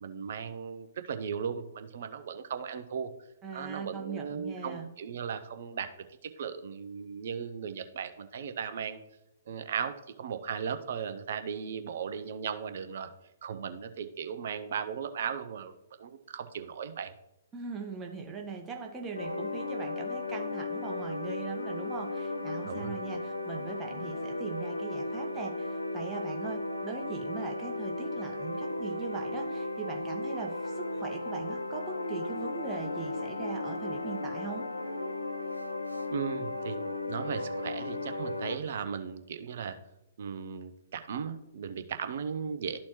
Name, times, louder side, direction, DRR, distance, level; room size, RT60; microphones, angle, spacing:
voice 1, 0.0-3.1 3.5-5.9 6.2-9.0 9.5-13.1 13.4-15.7 16.0-17.1 22.7-23.0 36.1-36.8 37.1-39.8 40.2-42.8, right 7 dB, 50° right, 9 dB, 0.6 m, -37 dB
voice 2, 3.4-4.9 17.5-34.7, right 5 dB, 15° right, 1 dB, 1.1 m, -40 dB
sound 1, 19.1-38.6, left 2 dB, 75° left, 0.5 m, -35 dB
12.5 x 4.2 x 3.0 m, 0.89 s
figure-of-eight pair, 120°, 0 cm